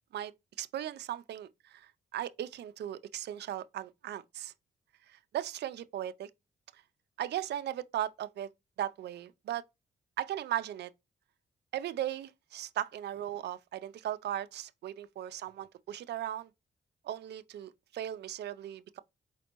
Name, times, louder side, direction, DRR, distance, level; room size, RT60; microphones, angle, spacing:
voice 1, 0.6-4.5 5.1-6.3 6.7-6.8 7.2-8.5 8.8-9.6 10.2-10.9 11.7-16.5 17.0-19.0, right 12 dB, 65° right, 0.4 m, -37 dB
4.3 x 4.1 x 2.8 m
cardioid pair, 75°, 18 cm